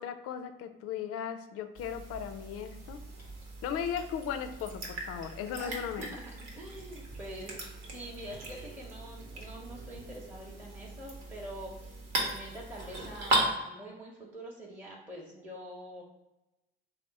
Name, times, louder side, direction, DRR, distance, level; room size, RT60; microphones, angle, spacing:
voice 1, 0.0-3.0 3.6-6.1, left 8 dB, 50° left, 8 dB, 0.5 m, -37 dB
sound 1, 1.7-13.5, right 2 dB, 60° right, 1.0 m, -37 dB
voice 2, 5.6-7.7 7.9-16.0, right 1 dB, 5° right, -5 dB, 0.8 m, -45 dB
3.4 x 2.0 x 4.0 m, 0.97 s
hypercardioid pair, 50°, 29 cm